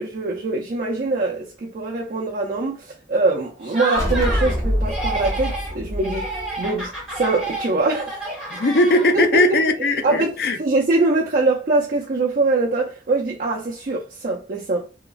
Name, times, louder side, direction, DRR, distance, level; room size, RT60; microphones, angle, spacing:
voice 1, 0.0-6.3 6.6-8.3 9.1-9.4 10.0-14.9, right 3 dB, 50° right, 0.4 m, -23 dB
Laughter, 3.6-4.6 4.8-5.7 6.0-9.4, right 1 dB, 5° right, 1.2 m, -29 dB
sound 1, 4.0-7.4, equal, 20° left, 1.1 m, -25 dB
voice 2, 8.5-10.6, left 2 dB, 60° left, 0.4 m, -19 dB
2.9 x 2.3 x 2.4 m
head